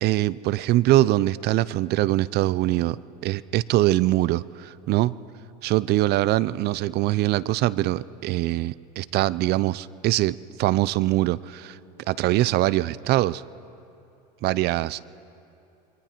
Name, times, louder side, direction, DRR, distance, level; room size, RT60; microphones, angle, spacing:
voice 1, 0.0-5.1 5.6-11.8 12.1-13.4 14.4-15.0, right 16 dB, 50° right, 20 dB, 0.5 m, -23 dB
27.5 x 22.5 x 4.5 m, 2.7 s
supercardioid pair, 110°, 21 cm